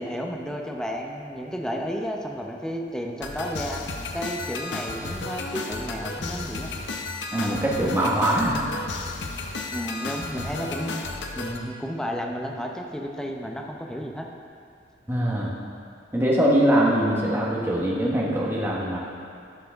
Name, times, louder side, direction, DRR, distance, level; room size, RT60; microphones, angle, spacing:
voice 1, 0.0-3.8 4.1-6.7 9.7-11.0 11.3-14.3, equal, 5° left, 1 dB, 0.6 m, -32 dB
sound 1, 3.2-11.6, left 3 dB, 85° left, 0.7 m, -33 dB
voice 2, 7.3-8.6 15.1-15.5 16.1-19.0, right 1 dB, 15° right, -4 dB, 1.2 m, -22 dB
11.5 x 5.8 x 3.5 m, 2.3 s
head